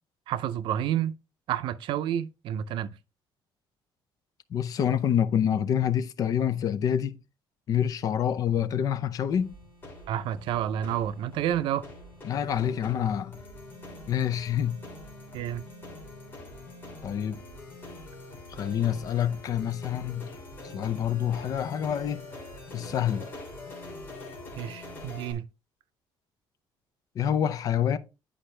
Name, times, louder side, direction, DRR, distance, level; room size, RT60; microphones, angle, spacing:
voice 1, 0.3-1.2 1.5-2.9 10.1-11.9 15.3-15.7 24.6-25.5, right 10 dB, 75° right, 0.5 m, -29 dB
voice 2, 4.5-7.2 7.7-9.5 12.2-13.4 14.1-14.8 17.0-17.4 18.5-20.3 20.6-22.2 22.7-23.3 27.2-28.0, left 9 dB, 45° left, 0.5 m, -27 dB
sound 1, 9.3-25.3, left 2 dB, 25° left, 2.9 m, -44 dB
10.0 x 5.0 x 3.3 m
cardioid pair, 170°, 8 cm